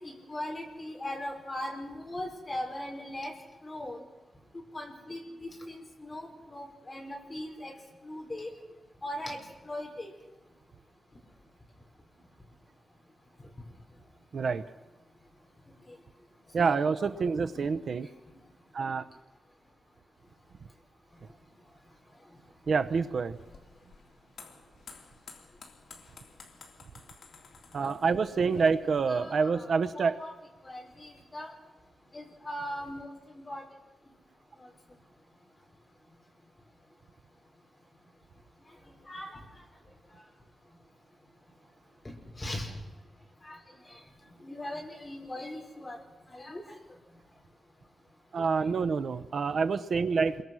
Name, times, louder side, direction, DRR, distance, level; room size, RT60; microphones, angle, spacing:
voice 1, 0.0-3.3 3.6-4.0 4.7-7.7 8.0-8.5 9.0-9.4 9.6-10.1 15.9-16.0 16.6-17.3 17.5-17.6 18.3-18.4 27.8-28.0 28.3-28.7 29.1-30.3 30.6-31.5 32.1-33.1 33.3-33.6 34.6-34.7 39.1-39.4 42.4-42.7 43.4-43.6 43.9-44.0 44.4-46.0 46.3-46.6, left 1 dB, 20° left, 1 dB, 5.1 m, -39 dB
voice 2, 14.3-14.6 16.5-18.1 18.7-19.1 22.7-23.4 27.7-30.2 48.3-50.4, right 5 dB, 55° right, 10 dB, 0.8 m, -27 dB
sound 1, 23.3-29.0, left 5 dB, 75° left, 3.4 m, -53 dB
28.0 x 23.0 x 6.3 m, 1.1 s
wide cardioid pair, 160°, 0 cm